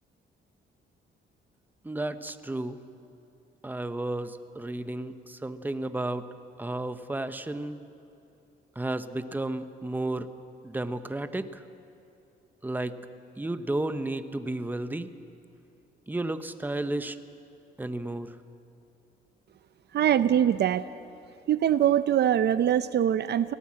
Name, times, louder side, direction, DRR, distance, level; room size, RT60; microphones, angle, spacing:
voice 1, 1.8-2.8 3.6-6.3 6.6-7.8 8.8-10.3 10.6-11.6 12.6-13.0 13.4-15.1 16.1-17.2 17.8-18.3, right 2 dB, 10° right, 10 dB, 0.9 m, -32 dB
voice 2, 19.9-20.8 21.5-23.5, right 10 dB, 55° right, 13 dB, 0.6 m, -23 dB
23.5 x 17.0 x 7.5 m, 2.7 s
cardioid pair, 90°, 20 cm